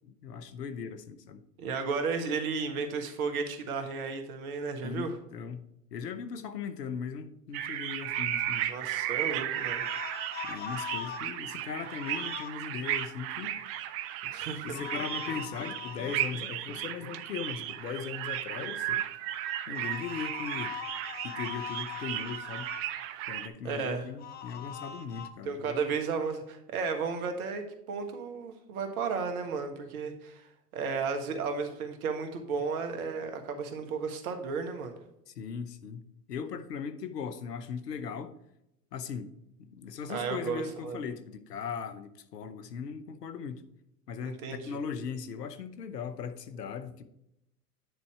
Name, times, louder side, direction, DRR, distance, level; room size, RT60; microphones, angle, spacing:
voice 1, 0.0-1.4 4.8-8.7 10.4-13.6 14.2-14.3 14.6-19.1 19.7-20.7 21.2-22.7 23.3-25.8 35.3-36.0 36.3-38.3 38.9-39.3 39.6-43.6 44.1-47.0, left 6 dB, 80° left, 1.0 m, -38 dB
voice 2, 1.6-5.1 8.7-9.8 11.4-11.5 14.3-14.7 23.6-24.1 25.5-30.5 30.7-35.0 40.1-41.0 44.2-44.8, right 5 dB, 60° right, 1.6 m, -33 dB
sound 1, 7.5-23.5, right 12 dB, 30° right, 0.4 m, -35 dB
sound 2, 9.5-11.3 11.8-12.5 14.7-16.3 19.7-22.8 24.2-25.3, left 8 dB, 20° left, 0.6 m, -41 dB
9.5 x 4.2 x 4.7 m
hypercardioid pair, 95°, 48 cm